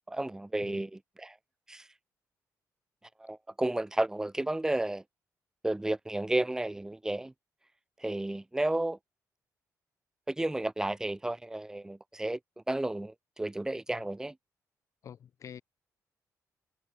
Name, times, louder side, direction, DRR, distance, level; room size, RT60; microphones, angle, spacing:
voice 1, 0.1-1.4 1.7-1.9 3.2-5.0 5.6-7.3 8.0-9.0 10.3-12.4 12.7-14.3, right 1 dB, 10° right, 1.4 m, -32 dB
voice 2, 15.0-15.6, left 8 dB, 55° left, 4.3 m, -47 dB
cardioid pair, 140°, 6 cm